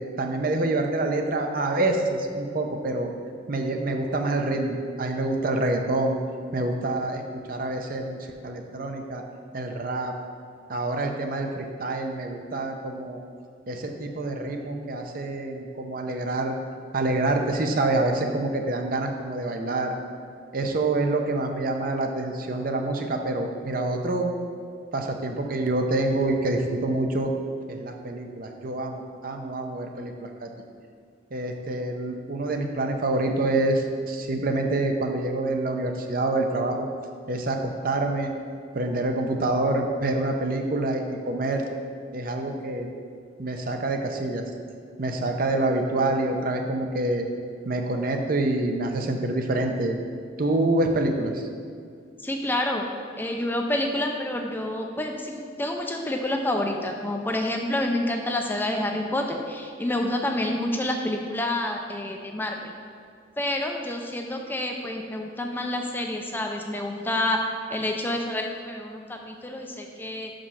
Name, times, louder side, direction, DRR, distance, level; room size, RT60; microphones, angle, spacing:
voice 1, 0.0-3.1 3.5-6.2 6.5-7.2 7.5-8.2 8.4-9.2 9.5-10.1 10.7-13.2 13.7-16.6 16.9-19.9 20.5-24.3 24.9-27.3 27.7-30.5 31.3-36.9 37.3-38.3 38.7-41.7 42.1-42.9 43.4-44.4 45.0-47.3 47.6-50.0 50.4-51.5, right 2 dB, 50° right, 4 dB, 0.7 m, -26 dB
voice 2, 52.2-52.8 53.2-62.7 63.4-67.4 67.7-70.3, left 1 dB, 10° left, 2 dB, 0.4 m, -28 dB
6.0 x 5.2 x 5.6 m, 2.2 s
head